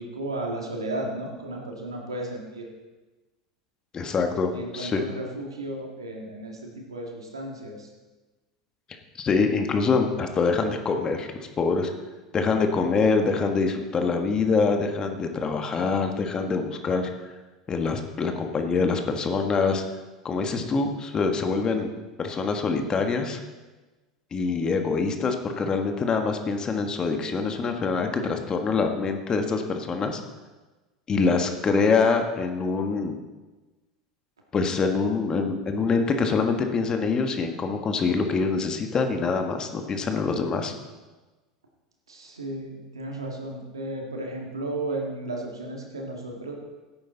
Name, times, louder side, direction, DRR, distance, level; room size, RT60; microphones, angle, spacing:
voice 1, 0.0-2.7 4.5-7.9 42.1-46.5, right 2 dB, 90° right, 0 dB, 2.3 m, -34 dB
voice 2, 3.9-5.0 9.2-11.9 12.3-17.1 17.7-19.8 20.2-21.9 22.2-23.4 24.3-30.2 31.1-33.2 34.5-40.7, left 4 dB, 30° left, 5 dB, 1.6 m, -25 dB
16.0 x 8.8 x 4.1 m, 1.2 s
hypercardioid pair, 80°, 3 cm